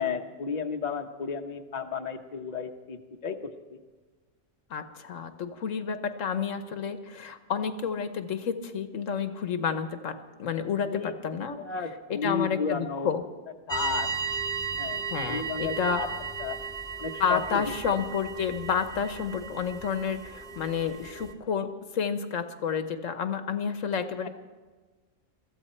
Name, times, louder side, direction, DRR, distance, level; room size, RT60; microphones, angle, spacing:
voice 1, 0.0-3.8 10.9-11.1 11.6-13.1 13.7-14.1 14.8-15.0 15.3-16.1 16.4-16.6 17.0-18.0 24.2-24.3, left 5 dB, 35° left, 5 dB, 1.0 m, -33 dB
voice 2, 4.7-10.1 10.4-11.6 12.1-13.2 15.1-16.0 17.2-21.7 21.9-24.3, left 6 dB, 80° left, 9 dB, 1.4 m, -30 dB
sound 1, 13.7-21.3, right 5 dB, 5° left, 1.1 m, -35 dB
22.5 x 14.5 x 4.4 m, 1.3 s
omnidirectional pair, 1.3 m